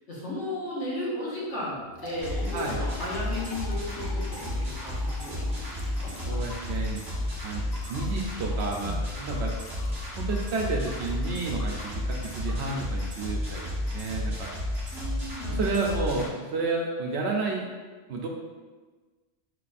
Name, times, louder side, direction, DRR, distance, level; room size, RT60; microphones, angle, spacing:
voice 1, 0.1-6.1 8.8-9.3 14.9-16.1, left 1 dB, 80° left, -7 dB, 1.6 m, -35 dB
Liquid, 1.6-13.5, equal, 30° left, 0.4 m, -46 dB
sound 1, 2.2-16.3, left 1 dB, 35° right, 1.3 m, -32 dB
voice 2, 6.2-7.0 7.4-7.6 7.9-9.0 9.3-9.5 10.2-14.5 15.5-17.7 18.1-18.3, right 3 dB, 70° right, -1 dB, 0.9 m, -31 dB
4.6 x 4.0 x 2.5 m, 1.3 s
omnidirectional pair, 1.2 m